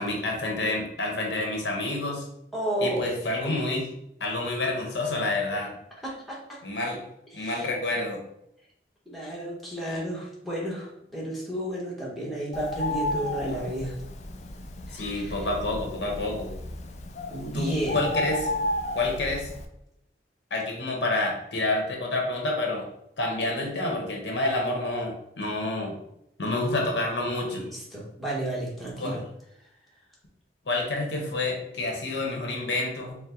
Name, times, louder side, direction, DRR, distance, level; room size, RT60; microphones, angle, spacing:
voice 1, 0.0-2.3 2.8-3.9 4.2-5.7 6.6-7.0 7.3-8.2 14.9-16.5 17.5-18.5 18.9-19.5 20.5-22.9 23.2-25.9 26.4-27.6 29.0-29.2 30.7-33.2, left 2 dB, 80° left, 0 dB, 0.9 m, -28 dB
voice 2, 2.5-3.1 6.0-6.4 7.3-7.7 9.1-14.0 14.9-15.4 17.3-18.0 27.6-29.2, right 1 dB, ahead, -5 dB, 0.9 m, -32 dB
Bird, 12.5-19.7, left 1 dB, 40° left, 0.3 m, -33 dB
4.4 x 2.0 x 3.6 m, 0.80 s
head